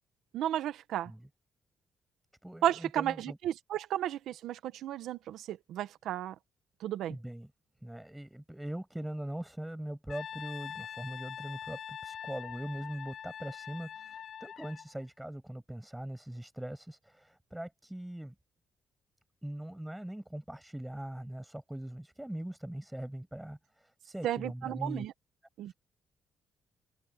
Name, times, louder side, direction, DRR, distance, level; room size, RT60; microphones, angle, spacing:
voice 1, 0.3-1.1 2.6-6.3 6.8-7.2 24.2-25.1 25.6-25.7, right 12 dB, 80° right, 1.2 m, -33 dB
voice 2, 2.4-3.4 7.1-7.5 7.8-18.3 19.4-25.1 25.7-25.8, right 1 dB, 5° right, 7.8 m, -41 dB
Brass instrument, 10.1-14.9, left 8 dB, 60° left, 8.0 m, -44 dB
open air
cardioid pair, 90°, 0 cm